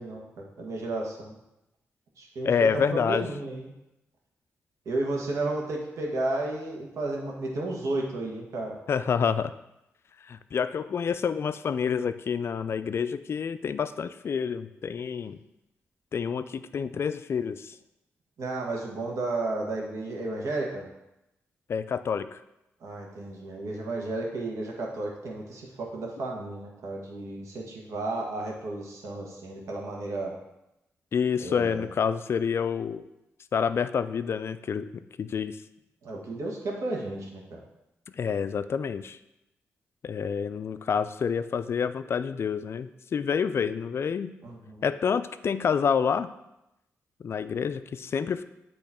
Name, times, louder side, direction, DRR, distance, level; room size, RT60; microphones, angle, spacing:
voice 1, 0.0-1.4 2.2-3.7 4.8-8.8 18.4-20.9 22.8-30.3 31.4-31.9 36.0-37.6 44.4-44.8, right 2 dB, 75° right, -1 dB, 1.4 m, -33 dB
voice 2, 2.4-3.3 8.9-9.5 10.2-15.4 16.1-17.8 21.7-22.4 31.1-33.1 33.5-35.6 38.1-39.2 40.0-44.4 44.8-46.3 47.2-48.4, left 6 dB, 55° left, 12 dB, 0.3 m, -28 dB
8.3 x 3.0 x 4.3 m, 0.89 s
cardioid pair, 75°, 5 cm